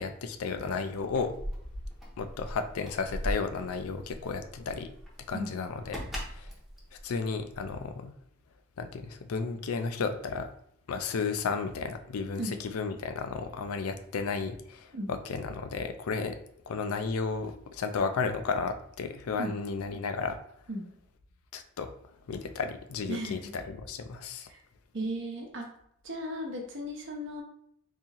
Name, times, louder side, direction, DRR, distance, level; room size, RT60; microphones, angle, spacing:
voice 1, 0.0-1.3 2.2-4.9 5.3-6.0 6.3-6.5 7.0-8.1 8.8-10.5 10.9-16.4 16.7-20.4 21.5-21.9 22.3-24.5, left 5 dB, 85° left, 8 dB, 0.4 m, -33 dB
Keys jangling, 1.0-7.9, equal, ahead, 0.7 m, -40 dB
voice 2, 23.1-23.5 24.5-24.6 24.9-25.7 26.0-27.4, equal, 55° right, 1 dB, 0.8 m, -35 dB
3.9 x 2.7 x 2.9 m, 0.70 s
head